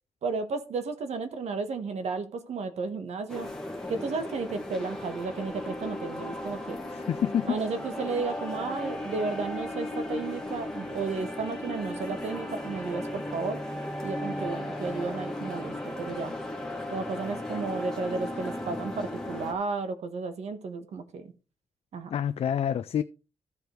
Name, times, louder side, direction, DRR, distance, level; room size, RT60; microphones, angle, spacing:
voice 1, 0.2-3.5 3.9-6.8 7.5-13.6 14.0-16.3 16.9-21.3 21.9-22.1, right 4 dB, 85° right, 1.4 m, -33 dB
sound 1, 3.3-19.5, left 1 dB, 5° left, 1.7 m, -36 dB
voice 2, 6.9-7.6 22.1-23.0, left 9 dB, 65° left, 0.4 m, -27 dB
14.0 x 5.1 x 4.5 m
wide cardioid pair, 175°, 11 cm